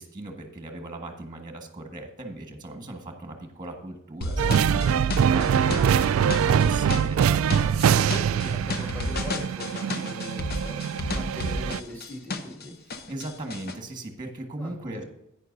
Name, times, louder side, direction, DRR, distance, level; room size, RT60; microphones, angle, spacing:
voice 1, 0.0-7.6 13.1-15.0, right 1 dB, 20° right, 3 dB, 1.5 m, -38 dB
sound 1, 4.2-12.6 12.9-13.7, left 2 dB, 50° left, 0.8 m, -32 dB
sound 2, 4.4-11.8, right 8 dB, 70° right, 0.3 m, -23 dB
voice 2, 7.3-10.8 11.1-12.7 14.6-15.0, equal, 10° left, -2 dB, 2.1 m, -40 dB
11.0 x 9.3 x 2.7 m, 0.85 s
head